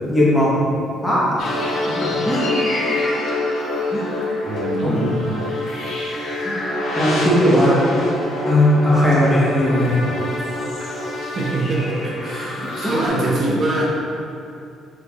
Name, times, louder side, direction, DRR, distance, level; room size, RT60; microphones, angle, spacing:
voice 1, 0.1-0.6 1.0-1.4 2.2-2.5 3.9-4.1 4.8-5.1 6.4-6.6 6.9-7.9 8.5-10.0 12.6-13.0, left 1 dB, 5° left, -9 dB, 1.1 m, -18 dB
sound 1, 1.4-13.1, left 1 dB, 85° left, 1.3 m, -25 dB
voice 2, 4.4-4.9 11.4-13.8, right 2 dB, 40° right, -5 dB, 0.6 m, -23 dB
6.1 x 3.3 x 2.4 m, 2.6 s
cardioid pair, 155°, 0 cm